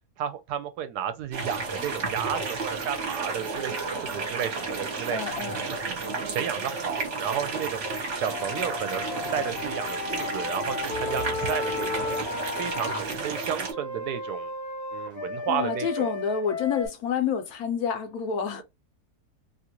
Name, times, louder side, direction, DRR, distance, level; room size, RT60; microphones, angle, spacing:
voice 1, 0.2-5.2 5.6-7.8 8.1-9.0 9.3-12.3 12.6-14.5 14.9-16.1, right 9 dB, 75° right, 1.1 m, -32 dB
sound 1, 1.3-13.7, right 4 dB, 50° right, 1.1 m, -32 dB
voice 2, 5.1-5.6 15.5-18.6, left 7 dB, 70° left, 1.1 m, -28 dB
Wind instrument woodwind instrument, 8.2-13.0 13.7-16.9, left 4 dB, 50° left, 0.7 m, -34 dB
2.8 x 2.4 x 2.9 m
omnidirectional pair, 1.8 m